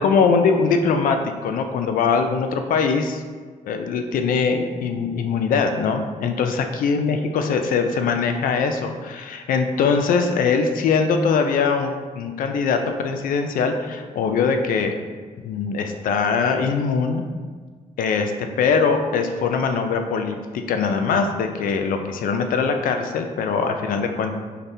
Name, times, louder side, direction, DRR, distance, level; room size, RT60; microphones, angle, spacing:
voice 1, 0.0-3.2 3.6-14.9 15.4-17.2 18.0-24.4, left 5 dB, 85° left, 6 dB, 0.4 m, -22 dB
4.0 x 3.3 x 2.7 m, 1.5 s
cardioid pair, 100°, 14 cm